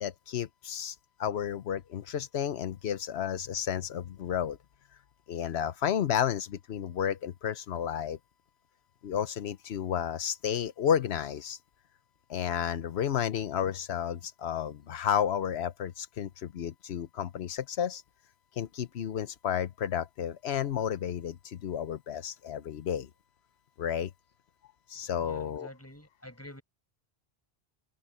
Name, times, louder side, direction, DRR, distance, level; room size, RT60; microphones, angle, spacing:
voice 1, 0.0-4.6 5.3-8.2 9.0-11.6 12.3-18.0 18.6-23.1 23.8-24.1 24.9-25.7, left 9 dB, 85° left, 1.0 m, -32 dB
voice 2, 25.2-26.6, left 1 dB, 15° left, 5.6 m, -48 dB
open air
omnidirectional pair, 1.0 m